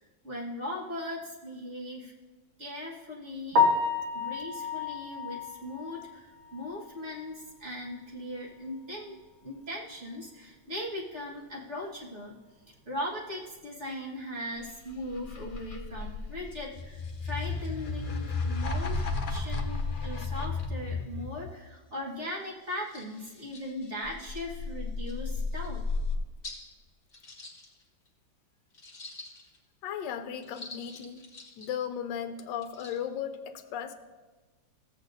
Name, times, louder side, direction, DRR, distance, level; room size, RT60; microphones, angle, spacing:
voice 1, 0.2-2.1 2.6-3.6 4.1-9.1 9.4-12.3 12.9-25.8, left 1 dB, 40° right, -5 dB, 1.7 m, -39 dB
Piano, 3.5-7.5 7.9-8.0 8.5-8.6 8.9-9.0 12.1-12.2 20.7-20.9, left 4 dB, 60° right, 1.4 m, -30 dB
sound 1, 14.7-21.4 24.1-26.1, left 3 dB, 55° left, 0.5 m, -33 dB
sound 2, 22.9-23.1 23.5-23.6 24.2-24.5 25.0-25.1 25.6-25.7 26.4-26.6 27.1-28.1 28.7-29.6 30.4-31.7 32.5-33.0, left 2 dB, 30° left, 1.4 m, -46 dB
voice 2, 29.8-31.2 31.6-33.9, left 8 dB, 75° left, 8 dB, 1.2 m, -36 dB
14.5 x 8.1 x 2.6 m, 1.3 s
omnidirectional pair, 2.0 m